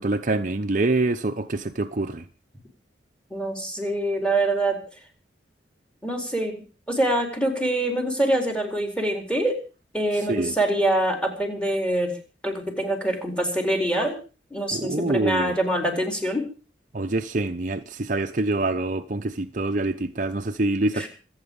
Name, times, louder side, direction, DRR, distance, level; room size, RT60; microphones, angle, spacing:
voice 1, 0.0-2.2 10.1-10.5 14.7-15.6 16.9-21.1, right 2 dB, 45° right, 0.8 m, -25 dB
voice 2, 3.3-4.8 6.0-6.6 6.9-9.5 9.9-12.1 12.4-14.2 14.5-16.4 20.9-21.1, right 1 dB, 5° left, 4.2 m, -24 dB
26.0 x 8.9 x 5.4 m
head